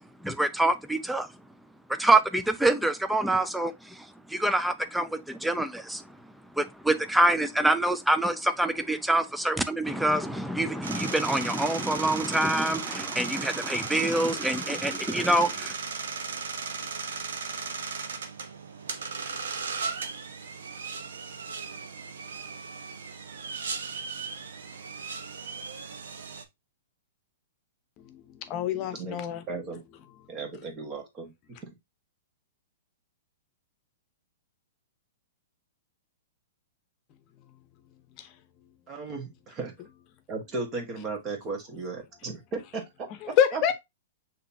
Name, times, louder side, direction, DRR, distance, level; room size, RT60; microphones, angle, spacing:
voice 1, 0.2-1.3 2.0-6.0 6.6-15.7, right 1 dB, ahead, 0.5 m, -26 dB
sound 1, 10.8-26.4, right 5 dB, 85° right, 0.9 m, -36 dB
voice 2, 28.0-29.5 38.2-38.3 43.2-43.7, left 9 dB, 35° left, 0.8 m, -27 dB
voice 3, 29.5-29.8 30.3-31.7 38.9-39.7 40.3-43.1 43.5-43.7, right 3 dB, 30° right, 1.4 m, -36 dB
6.6 x 2.9 x 2.7 m
hypercardioid pair, 140°, 0 cm